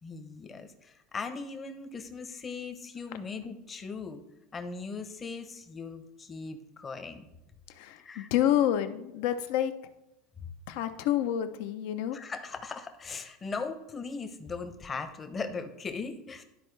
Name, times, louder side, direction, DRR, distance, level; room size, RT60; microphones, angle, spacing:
voice 1, 0.0-4.2 4.5-7.3 8.0-8.3 12.1-16.4, left 4 dB, 25° left, 7 dB, 0.8 m, -39 dB
voice 2, 7.7-9.7 10.7-12.2, left 11 dB, 70° left, 10 dB, 0.6 m, -28 dB
12.0 x 4.3 x 3.3 m, 0.92 s
supercardioid pair, 125°, 0 cm